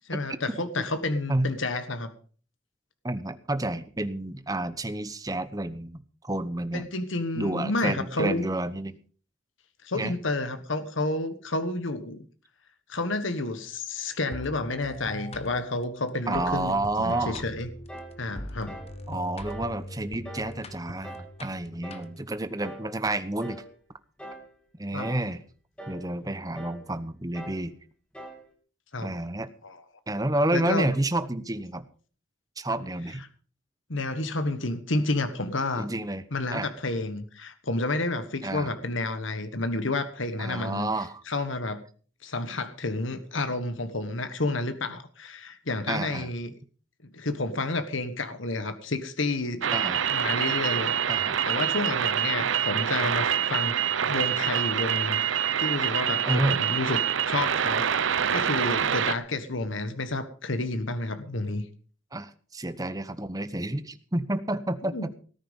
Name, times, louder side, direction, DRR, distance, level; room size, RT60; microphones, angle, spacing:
voice 1, 0.0-2.1 6.7-8.5 9.8-12.2 12.9-17.7 18.2-18.8 24.9-25.1 28.9-29.1 29.6-29.8 30.5-30.9 33.9-35.8 36.3-40.9 41.3-41.8 42.2-46.5 47.1-49.6 50.1-51.2 51.4-53.8 54.0-57.0 57.3-61.6 64.9-65.1, left 2 dB, 75° left, 10 dB, 1.5 m, -30 dB
voice 2, 3.0-6.8 7.3-9.0 9.9-10.1 16.3-17.4 19.1-23.6 24.8-25.4 25.9-27.7 29.0-29.5 30.1-31.9 32.6-33.2 35.8-36.2 36.5-36.7 38.4-38.7 40.4-41.2 45.9-46.3 49.7-50.0 51.1-51.4 56.2-56.6 62.1-65.1, right 1 dB, 15° right, 12 dB, 1.0 m, -30 dB
sound 1, 14.3-22.4, left 1 dB, 30° left, 1.3 m, -41 dB
sound 2, 16.3-16.6 17.1-17.4 17.9-18.2 18.7-19.0 19.5-19.8 20.2-20.6 21.0-21.3 21.8-22.1 22.6-22.9 23.4-23.7 24.2-24.5 25.0-25.3 25.8-26.0 26.5-26.8 27.3-27.7 28.1-28.4, right 1 dB, 5° left, 2.8 m, -42 dB
sound 3, 49.6-59.1, right 8 dB, 70° right, 0.7 m, -26 dB
18.5 x 10.0 x 5.5 m, 0.41 s
head